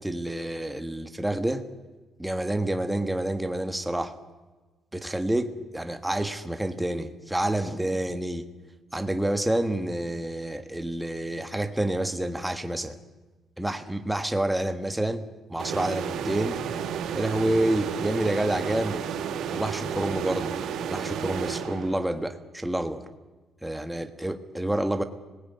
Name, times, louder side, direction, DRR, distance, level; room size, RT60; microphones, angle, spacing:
voice 1, 0.0-1.6 2.2-4.1 4.9-8.4 8.9-13.0 13.6-16.6 17.1-19.0 19.5-20.5 20.9-23.1 23.6-25.0, right 1 dB, 5° right, 8 dB, 1.4 m, -28 dB
sound 1, 15.6-22.3, right 8 dB, 75° right, 2.3 m, -32 dB
26.0 x 20.0 x 9.4 m, 1.2 s
cardioid pair, 175°, 0 cm